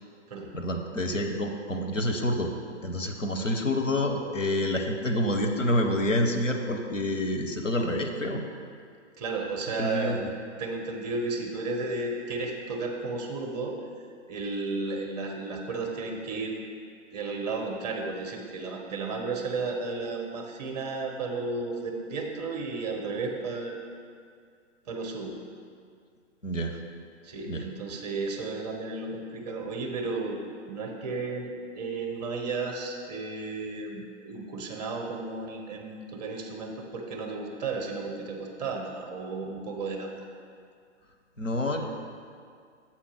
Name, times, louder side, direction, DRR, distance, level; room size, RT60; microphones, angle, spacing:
voice 1, 0.5-2.5 2.8-8.4 9.8-10.2 26.4-26.8 27.5-27.6 41.4-41.9, left 1 dB, 90° left, 3 dB, 0.9 m, -28 dB
voice 2, 9.2-10.2 10.6-13.8 14.3-16.6 17.1-23.8 24.9-25.4 27.2-30.4 30.7-40.1, right 3 dB, 35° right, 1 dB, 1.0 m, -33 dB
7.5 x 4.2 x 6.3 m, 2.2 s
figure-of-eight pair, 120°, 37 cm